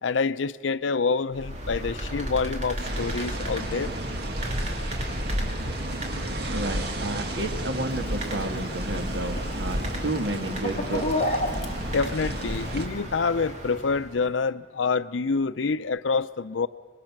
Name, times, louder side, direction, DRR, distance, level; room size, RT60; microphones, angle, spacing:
voice 1, 0.0-3.9 11.9-16.7, left 4 dB, 90° left, 0.6 m, -27 dB
sound 1, 1.3-14.3, equal, 40° right, 2.7 m, -36 dB
sound 2, 2.8-12.9, right 1 dB, 60° right, 1.8 m, -32 dB
voice 2, 6.5-11.3, right 2 dB, 80° right, 1.8 m, -31 dB
Chicken rooster, 7.9-13.0, left 1 dB, 40° left, 1.8 m, -33 dB
25.5 x 21.5 x 6.0 m
head